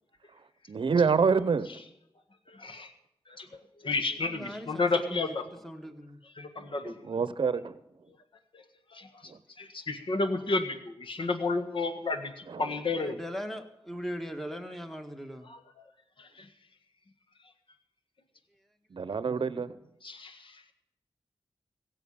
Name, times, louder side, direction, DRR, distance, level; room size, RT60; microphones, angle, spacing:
voice 1, 0.7-1.7 7.0-7.8 9.3-9.4 12.5-12.7 18.9-19.8, right 5 dB, 55° right, 15 dB, 0.8 m, -26 dB
voice 2, 2.5-2.9 3.3-5.4 6.4-7.0 8.5-8.6 8.9-9.1 9.6-13.2 15.5-15.6 16.2-16.5 20.0-20.6, left 3 dB, 60° left, 8 dB, 1.6 m, -32 dB
voice 3, 4.2-6.2 13.0-15.5, equal, 5° left, 6 dB, 1.5 m, -40 dB
16.5 x 7.4 x 8.7 m, 0.85 s
cardioid pair, 60°, 10 cm